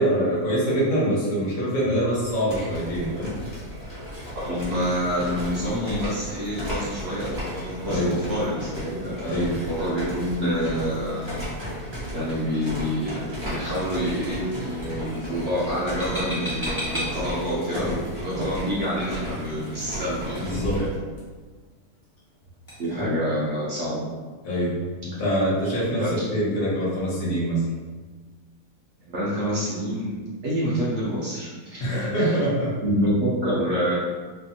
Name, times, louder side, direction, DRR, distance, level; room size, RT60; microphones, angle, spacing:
voice 1, 0.0-3.3 7.8-8.2 9.2-9.6 17.7-18.0 18.3-18.5 20.4-20.8 22.9-23.0 24.4-24.7 25.0-26.0 26.3-27.6 31.8-32.7, equal, 65° left, -6 dB, 1.2 m, -24 dB
sound 1, 2.1-21.0, equal, 30° right, 0.5 m, -34 dB
voice 2, 4.4-9.2 9.7-11.3 12.1-17.9 18.2-20.5 20.8-20.9 22.8-24.0 26.0-26.1 29.1-30.1 30.4-32.3 32.8-33.9, equal, 60° right, -7 dB, 0.8 m, -27 dB
sound 2, 11.2-22.9, equal, 20° left, 0.6 m, -42 dB
3.3 x 2.0 x 2.6 m, 1.4 s
omnidirectional pair, 1.6 m